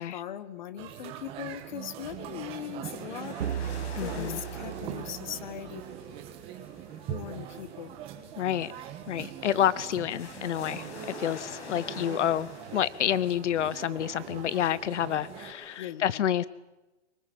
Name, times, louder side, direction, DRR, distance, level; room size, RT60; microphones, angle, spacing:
voice 1, 0.0-3.4 3.6-5.8 7.1-7.9 12.0-12.1 15.8-16.3, left 10 dB, 40° left, 14 dB, 1.6 m, -40 dB
sound 1, 0.8-15.5, right 10 dB, 15° right, 1.4 m, -42 dB
sound 2, 2.9-15.8, left 3 dB, 65° left, 7.9 m, -48 dB
sound 3, 3.4-6.0, right 10 dB, 80° right, 1.1 m, -37 dB
voice 2, 4.0-4.4 8.4-8.7 9.1-16.5, left 10 dB, 85° left, 20 dB, 0.8 m, -29 dB
24.5 x 23.5 x 7.9 m, 1.1 s
hypercardioid pair, 175°, 35 cm